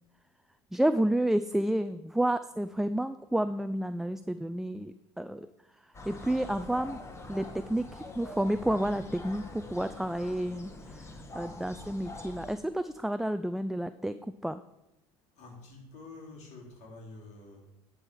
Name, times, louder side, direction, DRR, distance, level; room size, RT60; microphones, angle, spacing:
voice 1, 0.7-5.5 6.0-7.0 7.3-11.1 11.3-14.2 14.4-14.6, right 1 dB, 5° right, 11 dB, 0.3 m, -30 dB
sound 1, 5.9-12.6, left 2 dB, 20° left, 1.5 m, -44 dB
voice 2, 15.4-17.7, left 3 dB, 60° left, -2 dB, 3.3 m, -48 dB
10.5 x 4.8 x 6.5 m, 0.90 s
hypercardioid pair, 85°, 13 cm